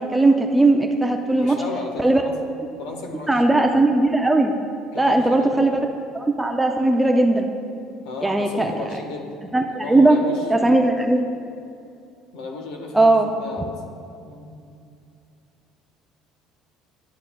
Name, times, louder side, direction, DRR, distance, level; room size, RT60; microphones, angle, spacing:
voice 1, 0.0-1.6 2.0-2.2 3.3-4.6 5.0-5.8 6.1-7.5 8.2-8.9 9.5-10.2 10.5-11.2 12.9-13.3, right 2 dB, 5° right, 3 dB, 0.3 m, -18 dB
voice 2, 1.3-2.4 2.8-3.6 4.9-5.6 8.0-9.4 9.7-10.8 12.3-13.8 14.2-14.6, left 3 dB, 75° left, 3 dB, 1.2 m, -34 dB
11.0 x 9.5 x 2.2 m, 2.5 s
cardioid pair, 165°, 0 cm